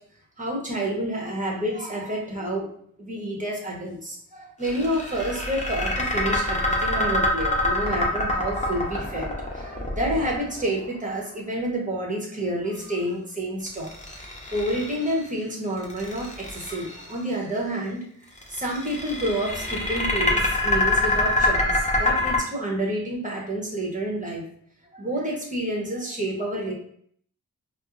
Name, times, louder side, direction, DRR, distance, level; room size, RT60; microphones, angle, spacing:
voice 1, 0.4-2.7 3.0-13.9 14.5-18.0 18.5-24.4 24.9-26.7, right 1 dB, 20° right, -2 dB, 1.1 m, -29 dB
sound 1, 4.6-10.8 13.7-15.2 15.8-17.1 18.4-22.4, left 1 dB, 20° left, 0.8 m, -25 dB
4.3 x 2.1 x 2.5 m, 0.63 s
wide cardioid pair, 60°, 35 cm